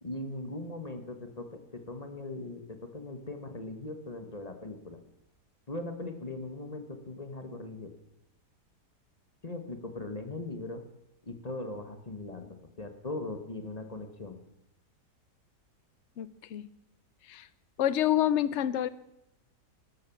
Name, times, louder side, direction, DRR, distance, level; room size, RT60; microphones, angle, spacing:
voice 1, 0.0-5.0 5.7-7.9 9.4-10.8 11.2-14.4, left 2 dB, 25° left, 7 dB, 1.2 m, -39 dB
voice 2, 16.2-16.7 17.3-17.5 17.8-18.9, left 11 dB, 55° left, 17 dB, 0.8 m, -27 dB
13.0 x 12.5 x 7.1 m, 0.84 s
omnidirectional pair, 1.8 m